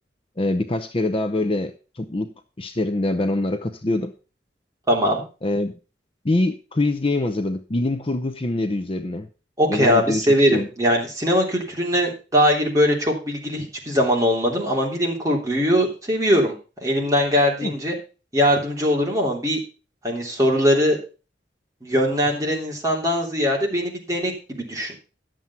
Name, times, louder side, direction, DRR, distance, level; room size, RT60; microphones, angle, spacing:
voice 1, 0.4-4.1 5.4-5.7 6.2-9.3 9.7-10.2 10.5-10.7 17.6-17.7, left 2 dB, 30° left, 9 dB, 0.7 m, -24 dB
voice 2, 4.9-5.2 9.6-16.5 16.8-17.9 18.3-19.6 20.0-21.0 21.8-24.9, equal, 20° right, -1 dB, 3.2 m, -21 dB
11.0 x 7.5 x 5.7 m, 0.33 s
head